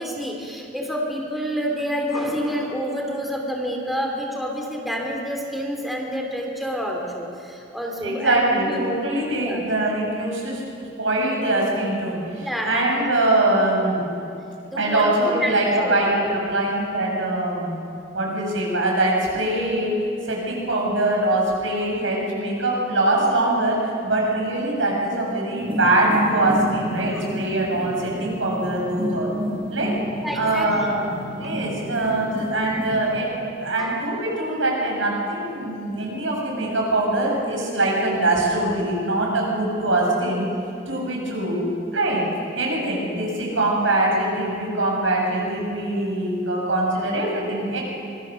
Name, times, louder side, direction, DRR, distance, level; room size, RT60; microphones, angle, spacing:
voice 1, 0.0-8.9 9.3-9.6 12.4-13.1 14.7-16.1 27.1-27.3 30.2-30.9 31.3-31.5 33.8-33.9, equal, ahead, 0 dB, 2.8 m, -28 dB
voice 2, 8.0-10.6 11.0-14.0 14.8-17.7 18.1-29.3 29.7-30.0 30.3-31.0 31.4-40.5 40.9-41.6 41.9-42.2 42.5-47.8, right 1 dB, 85° right, -2 dB, 7.3 m, -23 dB
sound 1, 25.6-33.3, equal, 30° right, 7.8 m, -30 dB
25.0 x 23.0 x 6.4 m, 2.6 s
head